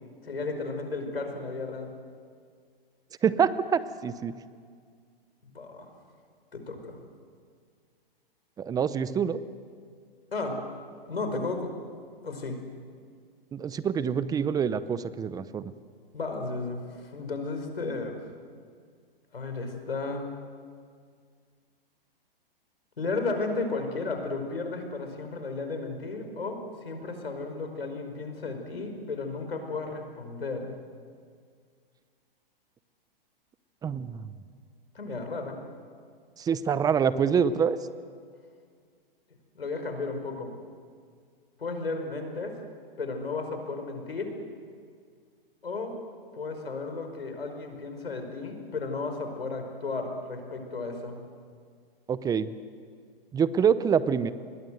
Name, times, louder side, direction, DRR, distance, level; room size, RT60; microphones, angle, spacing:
voice 1, 0.2-1.9 5.4-5.9 6.5-7.0 10.3-10.6 11.1-11.7 12.2-12.6 16.1-18.1 19.3-20.3 23.0-26.6 26.8-30.7 35.0-35.6 39.5-40.5 41.6-42.6 43.0-44.4 45.6-45.9 46.3-51.2, left 3 dB, 90° left, 5 dB, 5.2 m, -34 dB
voice 2, 3.2-4.3 8.6-9.4 13.5-15.7 33.8-34.3 36.4-37.8 52.1-52.5 53.3-54.3, right 7 dB, 10° right, 15 dB, 0.7 m, -26 dB
27.5 x 21.0 x 7.9 m, 2.1 s
hypercardioid pair, 130°, 29 cm